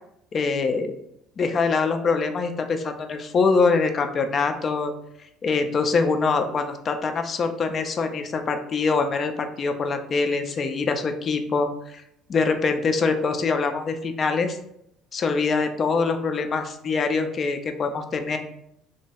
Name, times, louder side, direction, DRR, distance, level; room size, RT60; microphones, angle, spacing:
voice 1, 0.3-0.9 1.4-4.9 5.4-12.0 12.3-14.6 15.1-18.4, left 4 dB, 35° left, 7 dB, 0.3 m, -24 dB
2.8 x 2.1 x 3.4 m, 0.78 s
figure-of-eight pair, 55°, 0 cm